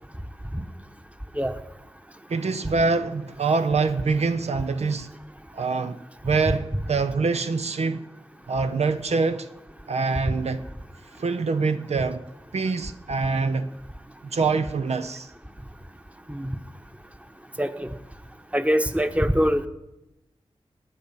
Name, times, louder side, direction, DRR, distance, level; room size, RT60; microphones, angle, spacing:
voice 1, 2.3-5.1 5.5-6.0 6.2-8.0 8.5-9.5 9.9-10.6 11.2-12.2 12.5-13.7 14.3-15.3, right 4 dB, 75° right, 0.7 m, -25 dB
voice 2, 17.6-17.9 18.5-19.7, equal, 10° right, 1.1 m, -23 dB
18.0 x 9.3 x 5.7 m
cardioid pair, 45°, 11 cm